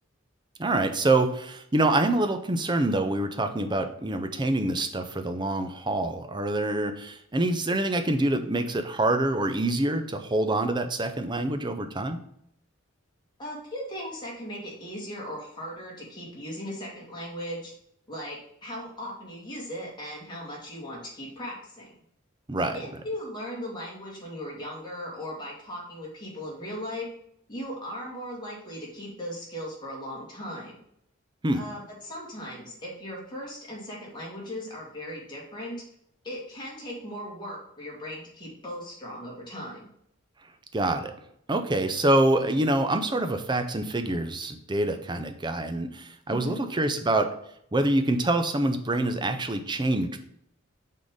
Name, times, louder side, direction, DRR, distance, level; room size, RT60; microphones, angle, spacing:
voice 1, 0.6-12.2 22.5-22.8 31.4-31.6 40.7-41.1 41.5-47.3 47.7-50.2, right 2 dB, 20° right, 7 dB, 0.5 m, -26 dB
voice 2, 13.4-17.7 18.1-21.9 22.7-27.1 27.5-30.7 31.5-35.8 36.2-39.8 46.3-46.7, equal, 20° left, -4 dB, 2.1 m, -38 dB
6.2 x 3.7 x 5.0 m, 0.73 s
head